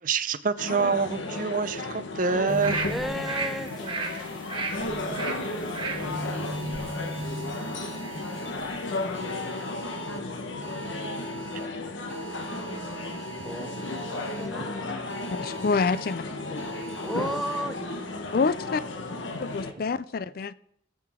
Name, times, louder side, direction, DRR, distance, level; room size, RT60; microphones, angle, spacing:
voice 1, 0.0-2.9 19.7-20.0, right 5 dB, 45° right, 14 dB, 0.5 m, -27 dB
sound 1, 0.6-19.7, left 2 dB, 85° left, 1.1 m, -34 dB
sound 2, 2.5-8.9 9.3-9.4, right 2 dB, 25° right, 1.4 m, -35 dB
voice 2, 2.9-5.2 5.5-5.9 12.5-15.0 17.0-18.2, equal, ahead, 8 dB, 0.6 m, -37 dB
sound 3, 6.1-8.5 9.1-10.2 10.6-11.7 12.1-14.5 15.1-16.1 16.6-17.6, right 5 dB, 85° right, 2.2 m, -43 dB
voice 3, 15.4-16.2 16.5-16.6 18.3-18.8 19.4-20.5, left 4 dB, 50° left, 17 dB, 0.4 m, -27 dB
19.0 x 7.7 x 3.6 m, 0.75 s
head